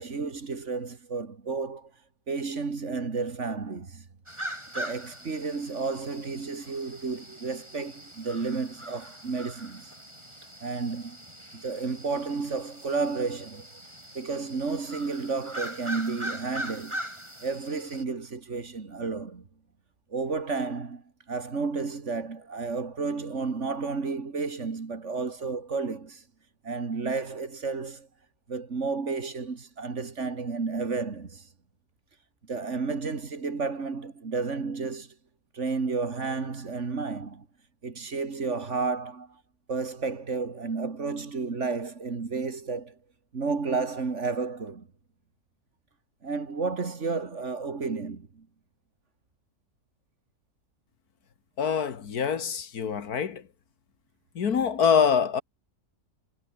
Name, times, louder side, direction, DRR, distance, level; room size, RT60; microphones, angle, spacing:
voice 1, 0.0-1.9 2.3-4.1 4.7-9.9 10.6-11.2 11.5-13.8 14.1-17.0 17.4-19.5 20.1-26.2 26.6-28.1 28.5-31.5 32.4-35.1 35.5-37.5 37.8-39.4 39.7-43.0 43.3-44.9 46.2-48.5, right 4 dB, 50° right, 2.3 m, -32 dB
sound 1, 4.3-18.0, right 1 dB, 20° right, 7.0 m, -41 dB
voice 2, 51.6-53.4 54.4-55.4, left 7 dB, 80° left, 2.1 m, -25 dB
omnidirectional pair, 1.6 m